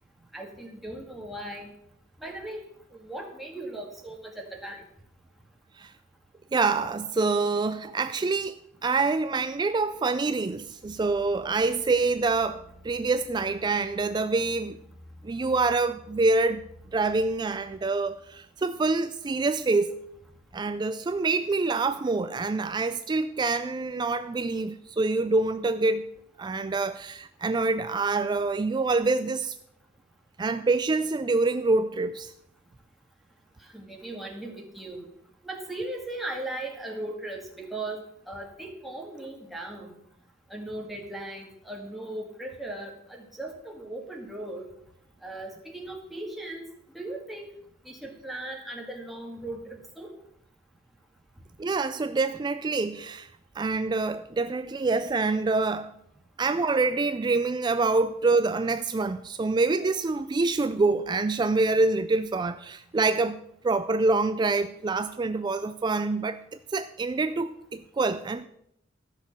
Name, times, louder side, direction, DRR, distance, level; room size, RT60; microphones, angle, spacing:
voice 1, 0.3-1.7 2.2-2.6 2.9-4.8 33.7-35.1 35.4-38.0 38.3-40.0 40.5-44.7 45.2-46.7 46.9-47.5 47.9-50.1, right 1 dB, ahead, 1.9 m, -38 dB
voice 2, 6.5-8.6 8.8-14.8 15.2-16.6 16.9-20.0 20.5-26.1 26.4-29.6 30.4-32.3 51.6-53.3 53.6-55.9 56.4-66.4 66.7-68.4, right 3 dB, 20° right, 0.3 m, -26 dB
sound 1, 10.8-20.4, equal, 15° left, 2.5 m, -53 dB
13.0 x 6.5 x 6.5 m
head